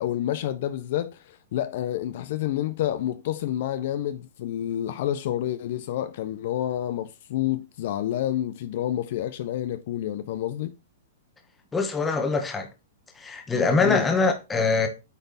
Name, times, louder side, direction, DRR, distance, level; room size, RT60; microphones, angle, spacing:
voice 1, 0.0-10.8 13.8-14.1, left 12 dB, 60° left, 0.6 m, -29 dB
voice 2, 11.7-12.7 13.2-14.9, left 4 dB, 10° left, 1.1 m, -23 dB
8.2 x 3.4 x 4.0 m
hypercardioid pair, 135°, 0 cm